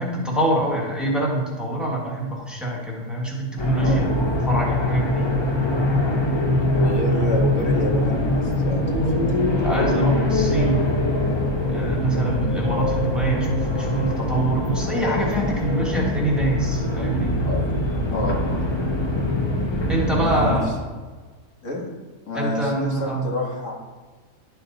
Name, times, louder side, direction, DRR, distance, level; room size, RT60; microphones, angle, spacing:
voice 1, 0.0-4.1 4.5-5.3 9.6-10.8 11.7-17.3 19.9-20.7 22.3-23.3, right 1 dB, ahead, -3 dB, 1.6 m, -25 dB
sound 1, 3.6-20.7, left 1 dB, 25° left, 0.8 m, -23 dB
voice 2, 3.7-4.1 6.7-9.5 17.4-17.6 18.1-18.7 20.2-20.7 21.6-21.9 22.3-23.8, left 1 dB, 75° left, -1 dB, 1.8 m, -28 dB
11.5 x 4.2 x 3.9 m, 1.4 s
omnidirectional pair, 1.3 m